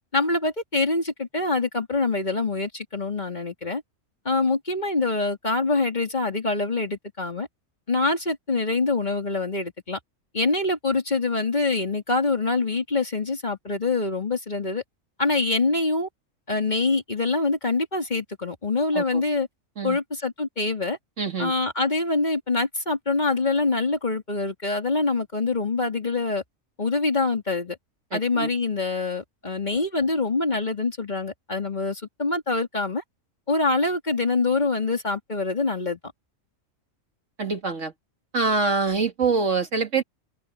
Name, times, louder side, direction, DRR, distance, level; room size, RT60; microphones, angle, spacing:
voice 1, 0.1-3.8 4.2-7.5 7.9-10.0 10.3-14.8 15.2-16.1 16.5-19.5 19.8-21.0 21.4-26.4 26.8-27.8 28.1-33.0 33.5-36.0, left 3 dB, 35° left, 2.7 m, -25 dB
voice 2, 21.2-21.5 28.1-28.5 37.4-37.9 38.3-40.0, right 4 dB, 65° right, 2.4 m, -25 dB
open air
omnidirectional pair, 1.4 m